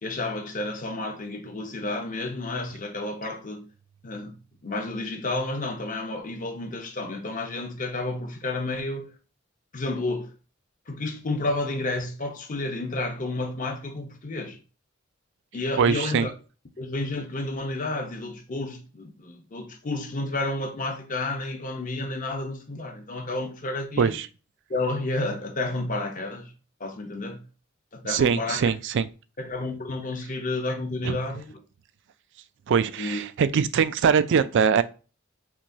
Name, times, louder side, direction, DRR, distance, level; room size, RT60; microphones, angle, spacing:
voice 1, 0.0-3.7 4.0-4.4 4.6-9.1 9.7-10.3 10.9-14.6 15.5-16.3 16.8-24.2 24.7-26.5 26.8-27.4 27.9-28.6 29.4-31.6 33.0-33.2, left 2 dB, 40° left, 0.8 m, -31 dB
voice 2, 15.8-16.3 24.0-24.3 28.1-29.1 31.0-31.2 32.7-34.8, right 6 dB, 60° right, 0.4 m, -22 dB
5.9 x 2.2 x 2.7 m
head